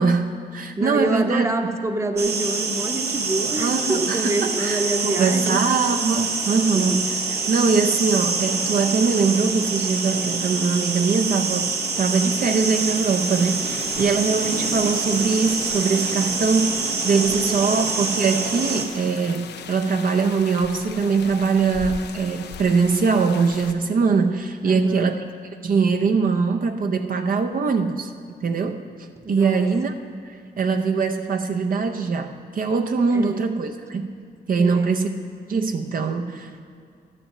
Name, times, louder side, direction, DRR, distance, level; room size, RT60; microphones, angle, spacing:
voice 1, 0.0-1.5 3.6-25.3 25.6-28.1 28.4-28.8 29.3-29.9 30.2-34.1 34.5-35.1 35.5-36.6, right 4 dB, 55° right, 5 dB, 0.6 m, -22 dB
voice 2, 0.8-5.6 6.9-7.0 7.4-7.5 17.4-17.8 24.7-25.1 29.2-29.7 33.1-33.5 34.6-35.0, right 2 dB, 15° right, 6 dB, 0.8 m, -27 dB
sound 1, 2.2-18.9, right 4 dB, 75° right, 1.2 m, -26 dB
sound 2, 12.4-23.7, left 7 dB, 85° left, 0.6 m, -39 dB
11.0 x 7.4 x 6.7 m, 2.2 s
cardioid pair, 80°, 17 cm